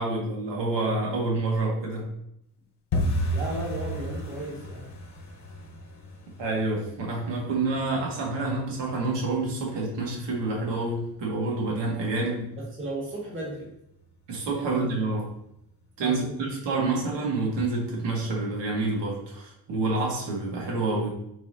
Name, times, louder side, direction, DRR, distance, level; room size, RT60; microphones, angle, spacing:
voice 1, 0.0-2.1 6.4-12.5 14.3-15.3 16.0-21.1, right 2 dB, 85° right, -3 dB, 2.1 m, -28 dB
sound 1, 2.9-13.6 13.9-14.6 14.8-15.2 15.4-15.8 16.1-16.2 16.7-17.2 17.6-17.7 18.2-18.3, equal, 70° left, 1.3 m, -35 dB
voice 2, 3.3-4.9 12.6-13.7 14.6-14.8 16.0-16.5, right 1 dB, 30° right, -4 dB, 2.0 m, -35 dB
8.4 x 4.1 x 2.8 m, 0.77 s
wide cardioid pair, 160°, 42 cm